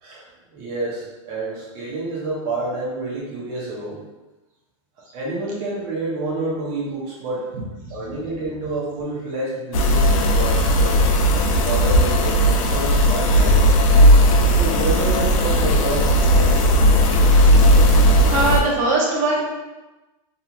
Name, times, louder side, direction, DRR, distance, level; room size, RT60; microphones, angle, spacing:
voice 1, 0.5-4.0 5.1-7.5 7.9-11.1 11.6-13.7 14.6-16.7, right 2 dB, 40° right, -5 dB, 0.9 m, -28 dB
sound 1, 9.7-18.6, equal, 85° left, 0.5 m, -16 dB
voice 2, 18.3-19.4, right 2 dB, 80° right, -4 dB, 0.9 m, -20 dB
2.9 x 2.6 x 2.4 m, 1.1 s
supercardioid pair, 150°, 17 cm